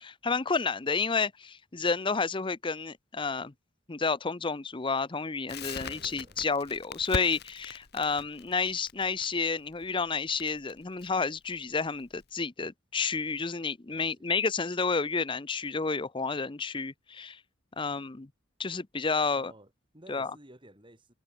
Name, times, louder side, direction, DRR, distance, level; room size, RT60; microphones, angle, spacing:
voice 1, 0.0-3.5 3.9-17.4 17.8-18.3 18.6-19.5 20.1-20.3, left 4 dB, 25° left, 0.7 m, -30 dB
Crackle, 5.5-12.3, left 4 dB, 55° left, 1.7 m, -41 dB
voice 2, 5.7-6.4 13.9-14.3 19.3-21.1, right 1 dB, 25° right, 6.0 m, -54 dB
head